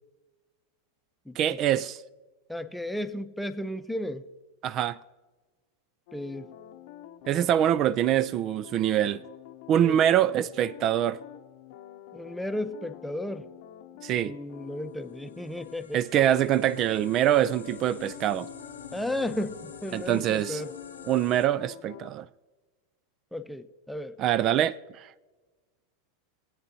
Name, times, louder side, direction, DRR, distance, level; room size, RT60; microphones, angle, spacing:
voice 1, 1.4-2.0 4.6-5.0 7.3-9.2 9.7-11.2 14.0-14.4 15.9-18.5 19.9-20.6 21.1-22.3 24.2-25.1, right 11 dB, 40° right, 0.3 m, -24 dB
voice 2, 2.5-4.3 6.1-6.5 9.8-10.0 12.1-13.5 14.2-16.0 18.9-20.7 23.3-24.2, left 1 dB, ahead, 0.7 m, -34 dB
sound 1, 6.1-15.8 16.2-22.1, left 12 dB, 60° left, 0.7 m, -47 dB
sound 2, 14.6-21.5, left 6 dB, 85° left, 1.0 m, -46 dB
20.5 x 8.6 x 2.8 m
hypercardioid pair, 95°, 0 cm